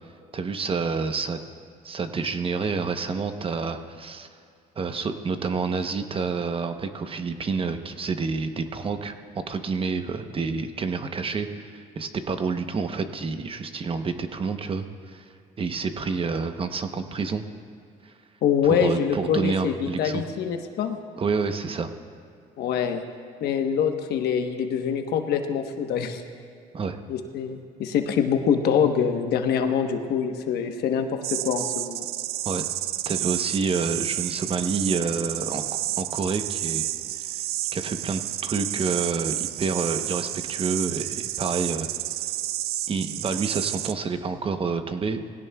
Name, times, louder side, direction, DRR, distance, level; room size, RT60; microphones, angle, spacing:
voice 1, 0.3-1.4 1.8-4.3 4.8-15.2 15.6-17.4 18.0-18.1 18.7-20.2 21.2-21.9 26.7-27.0 32.4-32.7 33.1-35.6 36.0-36.9 37.2-37.4 37.7-41.9 42.9-45.3, right 4 dB, 30° right, 8 dB, 0.9 m, -28 dB
voice 2, 18.4-21.0 22.6-23.0 23.4-26.2 27.1-32.1, left 7 dB, 70° left, 5 dB, 1.1 m, -25 dB
sound 1, 31.2-43.9, right 14 dB, 70° right, 0.4 m, -30 dB
20.0 x 17.0 x 2.3 m, 2.4 s
cardioid pair, 110°, 17 cm